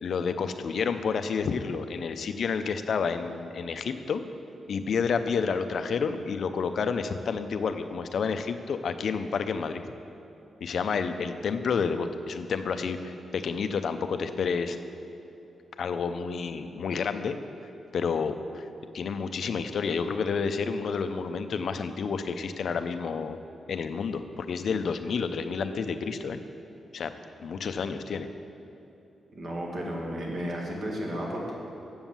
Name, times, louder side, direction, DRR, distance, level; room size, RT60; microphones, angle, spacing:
voice 1, 0.0-4.2 4.7-9.8 10.6-14.8 15.8-17.4 17.9-18.7 18.9-23.4 23.7-26.4 26.9-27.1 27.4-28.3, left 5 dB, 55° left, 9 dB, 0.5 m, -30 dB
voice 2, 29.3-31.5, equal, 50° right, -2 dB, 1.7 m, -33 dB
7.1 x 7.0 x 7.3 m, 2.9 s
wide cardioid pair, 145°, 0 cm